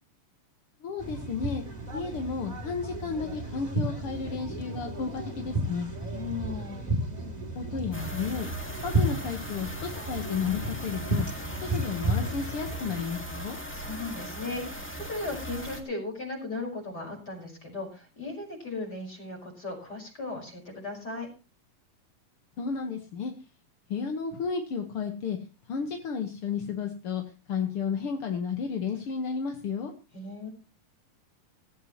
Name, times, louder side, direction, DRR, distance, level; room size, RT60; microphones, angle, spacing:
voice 1, 0.8-1.6 1.9-5.9 7.6-8.5 8.8-11.3 11.7-13.6 22.6-23.3 23.9-25.4 25.7-27.2 27.5-29.9, left 6 dB, 55° left, 4 dB, 1.9 m, -32 dB
sound 1, 1.0-12.9, right 1 dB, 10° right, 2.9 m, -33 dB
voice 2, 6.1-6.9 13.7-21.3 30.1-30.5, left 3 dB, 25° left, 0 dB, 5.6 m, -37 dB
sound 2, 7.9-15.8, right 1 dB, 5° left, 0.9 m, -39 dB
16.0 x 15.0 x 3.1 m, 0.32 s
omnidirectional pair, 3.9 m